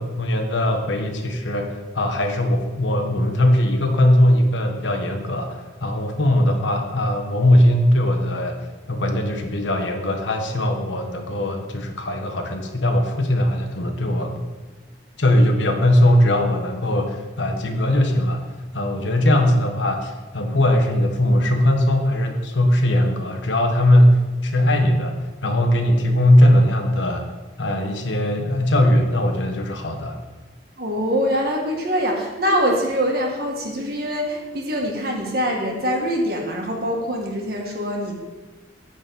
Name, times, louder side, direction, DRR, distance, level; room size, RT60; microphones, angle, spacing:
voice 1, 0.0-8.6 8.9-14.4 15.2-18.4 18.7-25.1 25.4-27.3 27.6-30.2, left 1 dB, 80° left, 4 dB, 1.2 m, -19 dB
voice 2, 30.8-38.2, equal, 55° right, 0 dB, 1.7 m, -24 dB
9.9 x 4.2 x 7.0 m, 1.3 s
head